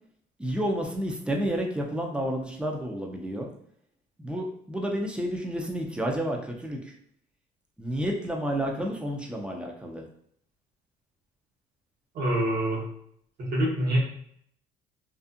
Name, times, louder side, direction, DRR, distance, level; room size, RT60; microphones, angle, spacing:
voice 1, 0.4-3.5 4.2-6.8 7.8-10.0, equal, 5° right, 1 dB, 0.4 m, -30 dB
voice 2, 12.1-12.9 13.4-14.0, right 1 dB, 60° right, -4 dB, 1.1 m, -26 dB
2.5 x 2.5 x 2.5 m, 0.68 s
cardioid pair, 110°, 17 cm